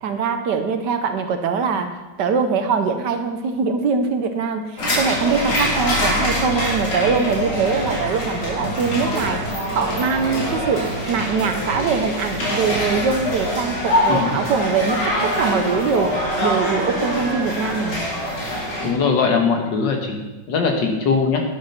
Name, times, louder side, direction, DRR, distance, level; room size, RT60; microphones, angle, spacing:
voice 1, 0.0-9.4 9.7-16.1 16.4-18.0, right 5 dB, 65° right, 7 dB, 1.4 m, -22 dB
sound 1, 4.8-18.9, equal, 85° left, 3.6 m, -24 dB
Dog, 5.7-6.8 7.2-7.9 8.9-9.7 11.6-12.3 16.5-17.9, equal, 40° left, 3.1 m, -34 dB
voice 2, 18.8-20.2 20.5-21.4, left 5 dB, 70° left, 3 dB, 2.0 m, -20 dB
11.0 x 6.7 x 5.7 m, 1.1 s
omnidirectional pair, 2.1 m